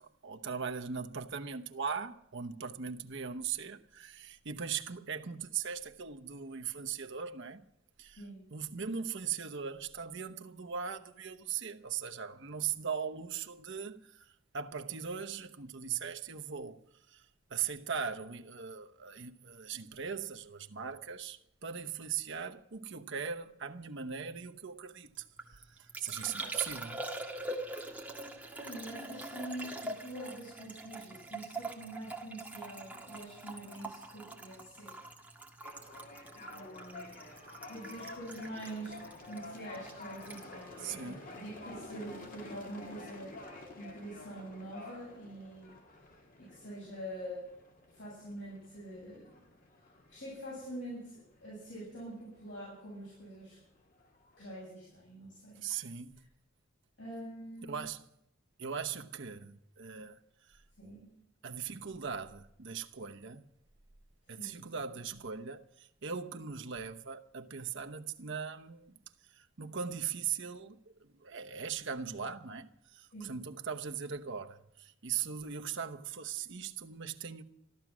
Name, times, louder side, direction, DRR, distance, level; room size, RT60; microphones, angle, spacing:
voice 1, 0.0-7.6 8.0-8.2 8.5-16.8 17.1-27.1 40.8-41.2 55.6-56.3 57.6-58.0 58.6-60.2 60.5-60.6 61.4-63.4 64.3-69.0 69.3-77.4, right 7 dB, 65° right, 0.9 m, -39 dB
Liquid, 25.1-41.8 42.0-42.6, right 2 dB, 10° right, 1.9 m, -44 dB
voice 2, 28.6-35.0 36.4-37.1 37.7-39.0 39.2-43.4 43.7-45.7 46.4-47.5 47.9-49.4 50.1-53.6 54.4-55.7 57.0-57.8 60.8-61.1 64.4-64.6 73.1-73.4, right 1 dB, 65° left, 7.4 m, -45 dB
sound 1, 35.6-54.5, left 2 dB, 45° left, 2.4 m, -51 dB
14.5 x 13.0 x 6.1 m
head